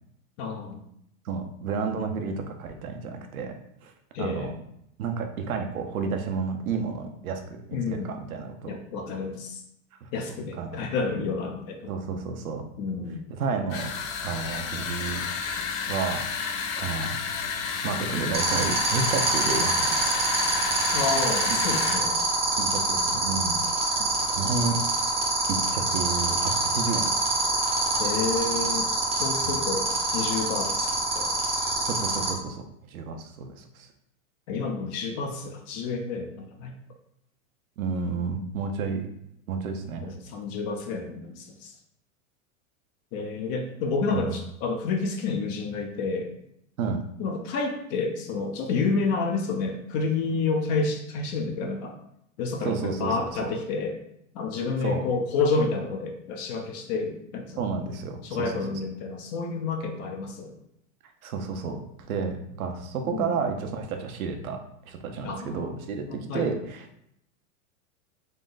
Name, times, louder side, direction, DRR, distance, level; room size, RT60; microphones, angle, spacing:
voice 1, 0.4-0.8 4.1-4.5 7.7-8.2 8.7-9.6 10.1-11.9 12.8-13.2 20.9-22.2 24.0-24.1 28.0-31.3 34.5-36.7 40.0-41.7 43.1-46.3 47.2-52.0 52.4-54.0 54.3-57.6 58.2-60.5 63.1-63.4 65.2-65.8 66.1-66.5, left 4 dB, 30° left, 3 dB, 0.4 m, -29 dB
voice 2, 1.2-3.5 3.8-3.9 4.2-4.5 5.0-8.7 10.0-10.1 10.6-10.9 11.9-12.6 13.3-13.9 14.2-15.2 15.9-16.2 16.8-17.2 17.8-20.2 22.6-24.0 24.3-24.8 25.5-27.1 29.4-29.6 31.8-32.6 32.9-33.9 37.8-39.1 39.5-40.1 44.1-44.3 46.8-47.0 52.6-53.5 54.8-55.0 57.6-58.7 61.2-64.6 64.9-66.8, right 5 dB, 85° right, 5 dB, 0.8 m, -31 dB
sound 1, 13.7-22.1, left 6 dB, 70° left, 0.7 m, -31 dB
sound 2, 18.3-32.3, right 3 dB, 15° right, 0.6 m, -25 dB
3.9 x 2.5 x 3.8 m, 0.76 s
supercardioid pair, 135°, 41 cm